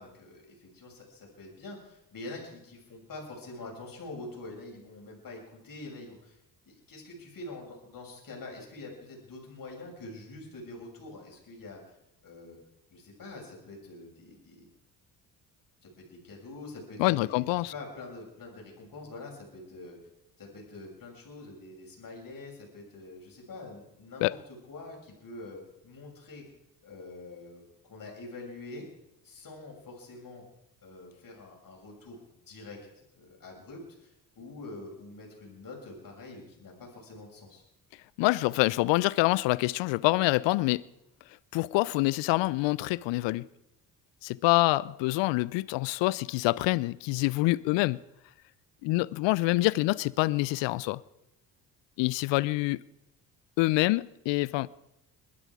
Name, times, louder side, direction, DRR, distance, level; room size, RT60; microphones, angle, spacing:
voice 1, 0.0-6.4 6.6-12.0 12.2-12.6 12.9-14.7 15.8-20.0 20.4-26.5 26.8-28.8 29.2-30.4 30.8-37.6, left 2 dB, 45° left, 6.9 m, -45 dB
voice 2, 17.0-17.7 24.2-24.3 38.2-40.8 41.5-43.5 44.2-48.0 48.8-51.0 52.0-52.8 53.6-54.7, left 20 dB, 65° left, 0.7 m, -26 dB
21.0 x 12.5 x 4.9 m
hypercardioid pair, 55°, 47 cm